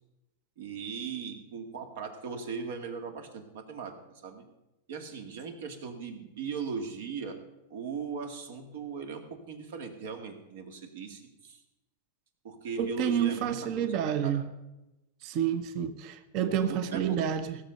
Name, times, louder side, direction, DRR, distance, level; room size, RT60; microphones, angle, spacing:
voice 1, 0.6-3.9 4.2-4.5 4.9-7.4 7.7-11.6 12.4-14.4 16.7-17.4, right 5 dB, 75° right, 6 dB, 2.1 m, -38 dB
voice 2, 12.8-14.4 15.2-17.6, right 9 dB, 45° right, 11 dB, 0.8 m, -29 dB
16.0 x 6.5 x 6.6 m, 0.95 s
supercardioid pair, 140°, 0 cm